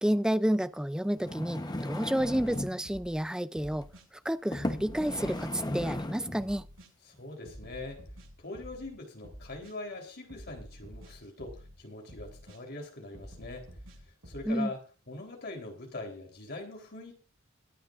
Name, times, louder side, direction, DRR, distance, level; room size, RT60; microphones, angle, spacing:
voice 1, 0.0-3.9 4.2-6.6 14.5-14.7, equal, 5° right, 0.5 m, -30 dB
sound 1, 1.1-2.8 3.6-3.8 4.5-6.5 7.1-7.2, left 1 dB, 20° left, 1.0 m, -36 dB
sound 2, 2.2-3.2 3.5-4.0 4.6-6.1 6.4-6.9 7.4-8.9 9.2-9.7 10.3-11.8 12.1-12.6 13.1-14.5, equal, 75° right, 7.3 m, -49 dB
voice 2, 7.2-8.0 8.4-13.7 14.3-14.8 15.1-17.1, left 2 dB, 55° left, 3.8 m, -42 dB
22.5 x 9.9 x 2.6 m
head